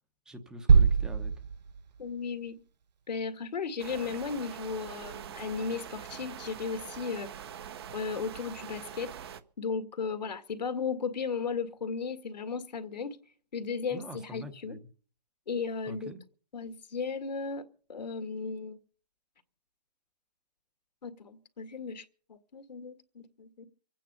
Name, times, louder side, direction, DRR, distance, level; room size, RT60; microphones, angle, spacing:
voice 1, 0.3-1.3 13.9-14.9 15.8-16.2, equal, 5° right, 9 dB, 0.9 m, -44 dB
sound 1, 0.7-2.5, right 5 dB, 80° right, 0.9 m, -24 dB
voice 2, 2.0-2.6 3.1-7.3 7.9-9.1 9.6-13.2 13.5-14.8 15.5-16.1 16.5-17.6 17.9-18.8 21.0-23.7, left 5 dB, 80° left, 9 dB, 2.0 m, -35 dB
sound 2, 3.8-9.4, right 9 dB, 35° right, 0.9 m, -44 dB
25.0 x 9.2 x 5.5 m, 0.44 s
hypercardioid pair, 165°, 21 cm